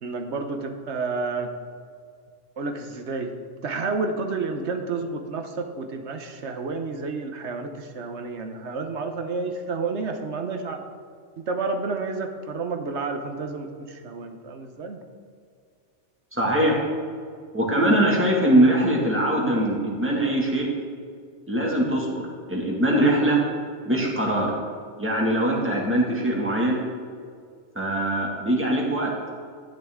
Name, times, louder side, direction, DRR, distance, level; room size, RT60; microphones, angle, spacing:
voice 1, 0.0-1.5 2.6-3.3 3.6-10.8 11.4-15.0, right 4 dB, 70° right, 6 dB, 1.2 m, -30 dB
voice 2, 16.3-16.8 17.5-20.7 21.5-22.2 22.5-23.4 23.8-24.5 25.0-26.8 27.8-29.1, right 1 dB, 10° right, -3 dB, 2.0 m, -22 dB
12.0 x 10.0 x 3.7 m, 2.2 s
omnidirectional pair, 1.2 m